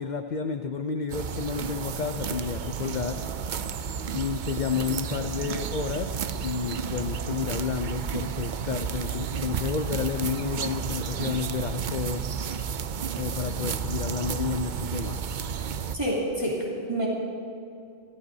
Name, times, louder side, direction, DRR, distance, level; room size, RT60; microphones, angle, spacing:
voice 1, 0.0-3.2 4.1-12.2 13.1-15.2, left 6 dB, 50° left, 7 dB, 0.6 m, -31 dB
sound 1, 1.1-16.0, right 7 dB, 55° right, 0.7 m, -32 dB
voice 2, 15.9-17.1, right 1 dB, 25° right, -6 dB, 3.3 m, -28 dB
25.0 x 16.5 x 2.8 m, 2.5 s
omnidirectional pair, 1.1 m